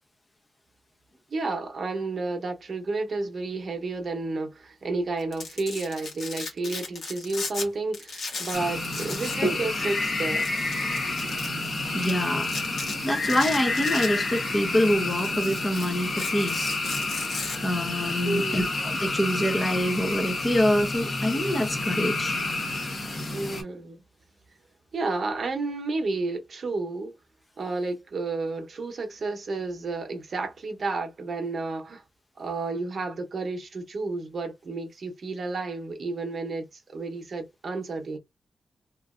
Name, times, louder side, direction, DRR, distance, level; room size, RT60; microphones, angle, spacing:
voice 1, 1.3-10.4 18.2-18.7 23.3-24.0 24.9-27.1 27.6-32.0 32.4-38.2, right 3 dB, 50° right, 0.8 m, -31 dB
Domestic sounds home sounds, 5.2-7.7 7.9-9.5 9.7-9.8 10.4-11.5 12.0-12.1 12.4-12.9 13.3-14.5 14.9-17.6, left 3 dB, 70° left, 1.3 m, -36 dB
sound 1, 8.5-23.6, left 2 dB, 40° left, 1.1 m, -29 dB
voice 2, 11.9-12.5 13.0-16.8 17.6-22.4, equal, 15° left, 0.6 m, -26 dB
3.0 x 2.5 x 2.4 m
wide cardioid pair, 155°, 0 cm